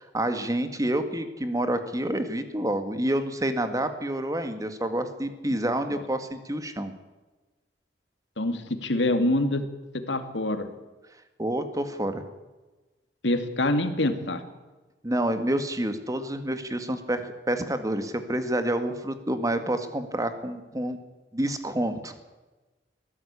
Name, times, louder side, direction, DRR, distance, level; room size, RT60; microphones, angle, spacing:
voice 1, 0.0-6.9 11.4-12.2 15.0-21.0 21.3-22.1, right 1 dB, 20° right, 9 dB, 2.0 m, -28 dB
voice 2, 8.4-9.7 10.1-10.7 13.2-14.4, left 1 dB, 85° left, 8 dB, 2.4 m, -25 dB
22.0 x 15.5 x 8.4 m, 1.2 s
head